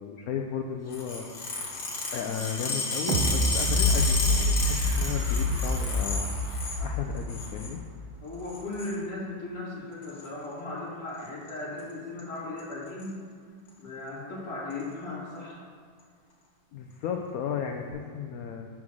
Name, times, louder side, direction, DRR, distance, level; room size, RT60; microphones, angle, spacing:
voice 1, 0.0-1.4 1.6-1.8 2.1-6.4 6.8-7.8 16.7-18.7, left 7 dB, 85° left, 3 dB, 0.7 m, -34 dB
sound 1, 0.9-6.8 7.2-7.7 8.4-8.9 10.0-10.2 11.2-11.5 11.8-11.9 12.2-12.3 12.6-13.1 13.7-13.8 14.7-14.8, left 3 dB, 55° left, 1.8 m, -32 dB
sound 2, 3.1-8.0 8.4-8.5, left 1 dB, 80° right, 1.5 m, -27 dB
voice 2, 8.2-13.1 13.8-15.5, left 2 dB, 15° left, -9 dB, 1.7 m, -37 dB
7.5 x 3.7 x 6.1 m, 2.1 s
omnidirectional pair, 2.1 m